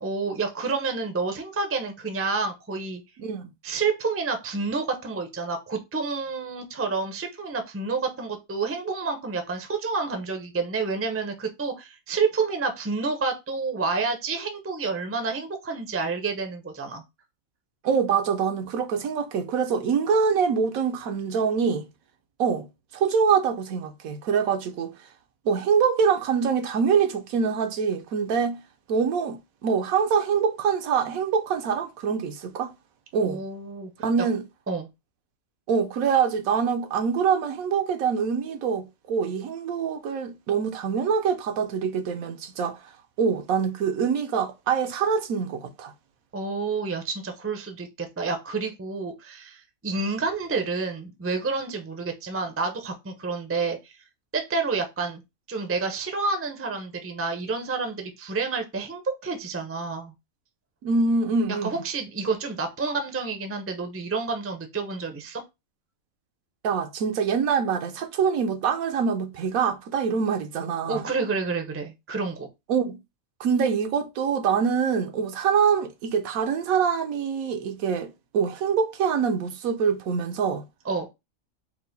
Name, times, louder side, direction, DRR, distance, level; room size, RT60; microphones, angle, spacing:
voice 1, 0.0-3.0 3.6-17.0 33.2-33.9 34.7-34.9 46.3-54.0 54.3-55.2 55.5-60.1 61.6-65.4 70.9-72.5 80.8-81.1, right 4 dB, 20° right, 0.3 m, -29 dB
voice 2, 3.2-3.5 17.8-21.9 22.4-22.7 22.9-24.9 25.4-28.6 28.9-32.7 33.1-33.4 34.0-34.4 35.7-42.8 43.2-45.9 60.8-61.8 66.6-71.1 72.7-73.0 73.4-80.6, right 6 dB, 80° right, 1.1 m, -24 dB
4.6 x 2.1 x 3.9 m
omnidirectional pair, 1.5 m